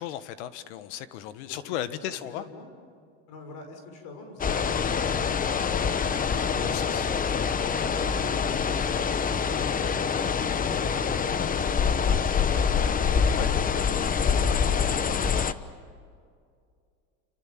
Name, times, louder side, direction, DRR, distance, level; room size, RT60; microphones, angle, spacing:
voice 1, 0.0-2.4 6.5-7.1 13.4-13.5, left 11 dB, 85° left, 13 dB, 1.5 m, -35 dB
voice 2, 1.5-2.0 2.3-2.7 3.3-5.9 6.4-7.3 7.7-9.9 10.6-11.7 12.1-15.4, left 2 dB, 60° left, 5 dB, 6.3 m, -45 dB
sound 1, 4.4-15.5, left 6 dB, 25° left, 1.0 m, -25 dB
29.0 x 27.0 x 7.6 m, 2.3 s
supercardioid pair, 120°, 33 cm